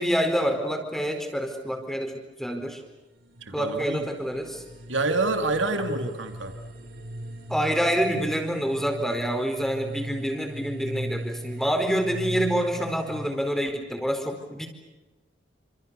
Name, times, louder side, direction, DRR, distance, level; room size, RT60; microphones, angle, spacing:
voice 1, 0.0-2.1 2.4-2.8 3.5-4.6 7.5-14.7, equal, ahead, 5 dB, 4.5 m, -27 dB
sound 1, 2.6-13.3, right 1 dB, 55° right, 6.0 m, -38 dB
voice 2, 3.4-4.0 4.9-6.5, right 3 dB, 85° right, 6 dB, 2.9 m, -27 dB
28.5 x 27.5 x 6.9 m, 1.1 s
head